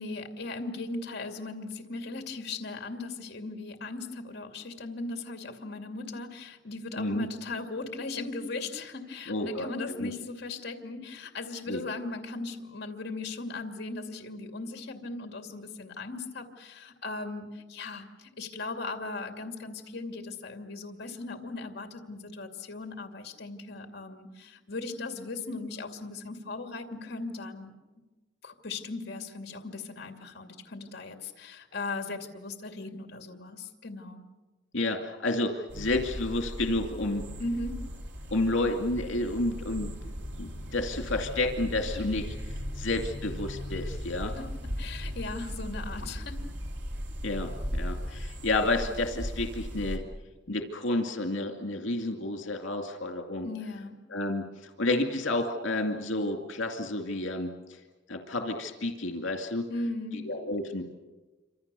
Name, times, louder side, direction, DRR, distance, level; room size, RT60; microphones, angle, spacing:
voice 1, 0.0-27.7 28.4-34.2 37.4-37.8 44.3-44.5 44.8-46.4 53.4-54.0 59.7-60.2, left 3 dB, 55° left, 5 dB, 2.5 m, -38 dB
voice 2, 7.0-7.3 9.3-9.7 10.0-10.1 11.7-11.8 34.7-37.2 38.3-39.9 40.4-44.3 47.2-50.0 50.5-53.5 54.1-57.8 58.1-59.6 60.1-60.8, left 2 dB, 80° left, 4 dB, 2.4 m, -30 dB
sound 1, 35.7-50.0, equal, 65° right, 3.7 m, -37 dB
28.0 x 26.0 x 6.9 m, 1.2 s
head